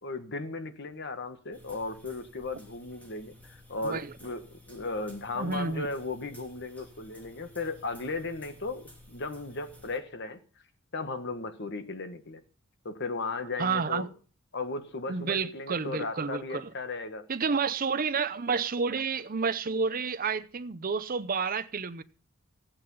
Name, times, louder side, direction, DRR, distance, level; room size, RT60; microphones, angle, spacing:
voice 1, 0.0-10.4 10.9-12.4 12.8-14.1 14.5-17.2, left 3 dB, 55° left, 1.4 m, -36 dB
sound 1, 1.5-10.0, left 1 dB, 5° left, 2.9 m, -54 dB
voice 2, 5.4-5.9 13.6-14.1 15.1-16.7 17.3-22.0, right 5 dB, 45° right, 0.7 m, -30 dB
15.5 x 8.9 x 5.5 m
head